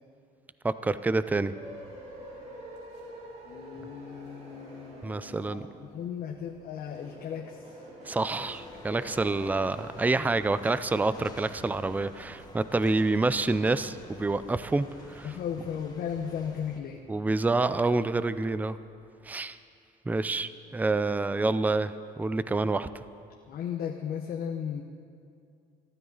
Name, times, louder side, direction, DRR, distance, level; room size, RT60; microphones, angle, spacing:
voice 1, 0.6-1.5 5.0-5.6 8.0-15.4 17.1-18.8 19.3-19.6 20.1-22.9, right 3 dB, 10° right, 14 dB, 0.4 m, -27 dB
sound 1, 1.5-9.9, equal, 40° right, 3.3 m, -47 dB
voice 2, 3.4-7.6 15.2-17.0 23.5-24.8, left 8 dB, 65° left, 2 dB, 1.1 m, -36 dB
sound 2, 8.3-16.8, left 2 dB, 25° left, 1.7 m, -49 dB
24.0 x 12.5 x 4.0 m, 2.4 s
cardioid pair, 110°, 17 cm